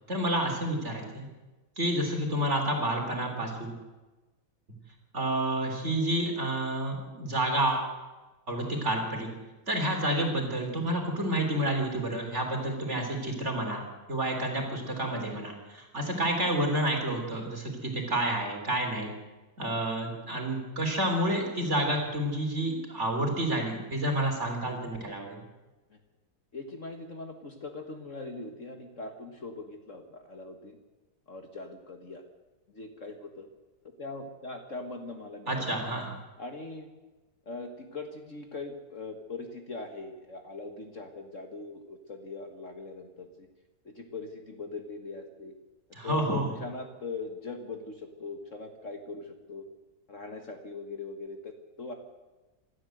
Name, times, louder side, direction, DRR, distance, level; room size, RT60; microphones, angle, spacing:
voice 1, 0.1-1.3 1.8-3.7 5.1-7.9 8.5-9.3 9.7-19.1 19.6-25.4 35.5-36.1 45.9-46.5, right 1 dB, 35° right, 2 dB, 4.1 m, -29 dB
voice 2, 26.5-30.8 31.3-32.2 32.7-33.5 34.0-35.8 36.4-36.9 37.5-43.5 43.9-45.5 46.0-49.7 50.1-51.9, left 3 dB, 45° left, 5 dB, 1.9 m, -41 dB
26.0 x 13.5 x 7.9 m, 1.2 s
omnidirectional pair, 2.0 m